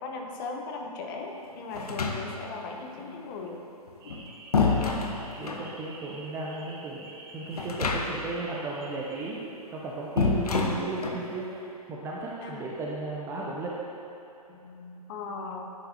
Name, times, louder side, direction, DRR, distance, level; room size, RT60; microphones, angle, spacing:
voice 1, 0.0-3.6 12.4-12.7 14.5-15.7, left 3 dB, 35° left, 1 dB, 0.8 m, -38 dB
sound 1, 1.7-2.6 3.9-5.7 7.5-8.4 8.6-8.7 10.2-11.3, left 4 dB, 75° left, 0.7 m, -28 dB
sound 2, 4.0-9.3, right 2 dB, 35° right, 1.0 m, -48 dB
voice 2, 4.6-5.0 5.4-13.8, right 2 dB, 15° right, -4 dB, 0.5 m, -35 dB
10.0 x 5.6 x 2.8 m, 3.0 s
figure-of-eight pair, 120°, 20 cm